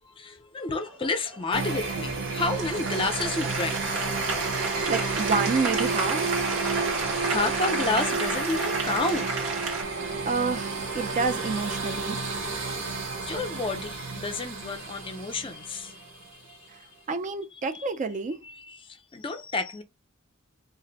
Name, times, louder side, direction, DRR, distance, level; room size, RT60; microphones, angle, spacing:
voice 1, 0.0-4.2 7.2-9.3 12.6-12.9 13.2-16.9 17.7-17.9 18.4-19.8, left 3 dB, 25° left, 0.5 m, -31 dB
Applause, 0.7-9.8, right 3 dB, 80° right, 1.0 m, -33 dB
sound 1, 1.5-16.3, right 4 dB, 60° right, 0.8 m, -31 dB
voice 2, 4.6-6.5 10.0-12.2 16.7-16.8 17.1-18.4, right 4 dB, 35° right, 0.4 m, -29 dB
2.5 x 2.0 x 3.8 m
head